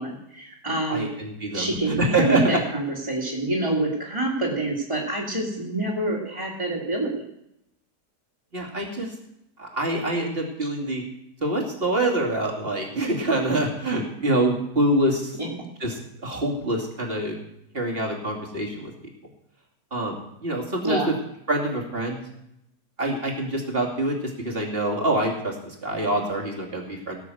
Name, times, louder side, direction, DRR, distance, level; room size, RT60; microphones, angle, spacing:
voice 1, 0.0-1.1 1.5-7.2 10.6-10.7 15.4-15.5 20.8-21.1, right 2 dB, 20° right, -4 dB, 2.6 m, -26 dB
voice 2, 0.9-2.6 8.5-9.1 9.6-11.0 11.4-15.4 15.8-17.4 17.7-18.9 19.9-21.1 21.5-22.2 23.0-27.2, right 1 dB, 40° right, 0 dB, 2.9 m, -26 dB
17.5 x 6.8 x 7.9 m, 0.78 s
omnidirectional pair, 1.6 m